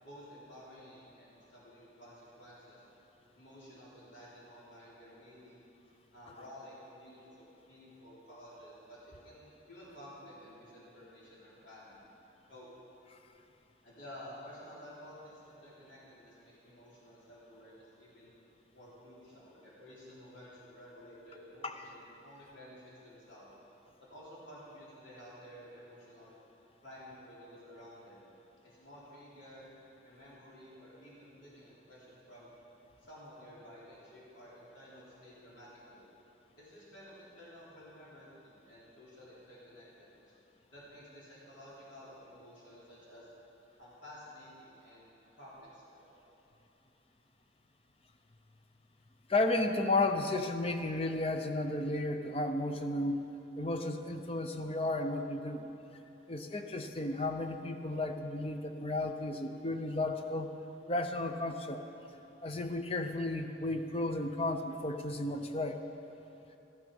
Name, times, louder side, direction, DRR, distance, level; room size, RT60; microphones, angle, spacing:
voice 1, 0.0-2.8 3.3-5.6 6.1-12.0 12.5-12.7 13.8-18.3 18.7-23.5 24.0-26.3 26.8-28.3 28.6-29.7 30.0-32.5 33.0-36.1 36.6-40.3 40.7-43.3 43.8-46.1, equal, 70° left, -8 dB, 3.6 m, -53 dB
voice 2, 49.3-55.7 56.3-60.5 60.9-61.8 62.4-65.8, left 2 dB, 30° left, 6 dB, 0.7 m, -33 dB
13.5 x 12.0 x 5.4 m, 3.0 s
head